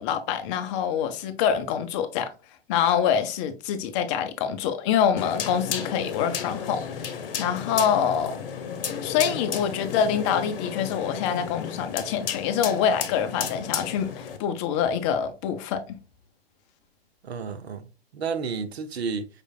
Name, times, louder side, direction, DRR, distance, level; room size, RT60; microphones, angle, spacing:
voice 1, 0.0-2.3 2.7-8.4 9.0-16.0, left 8 dB, 30° left, 0.6 m, -25 dB
sound 1, 5.2-14.4, left 7 dB, 60° left, 0.8 m, -33 dB
voice 2, 17.2-19.3, right 5 dB, 80° right, 0.6 m, -31 dB
5.0 x 3.2 x 2.2 m
hypercardioid pair, 120°, 31 cm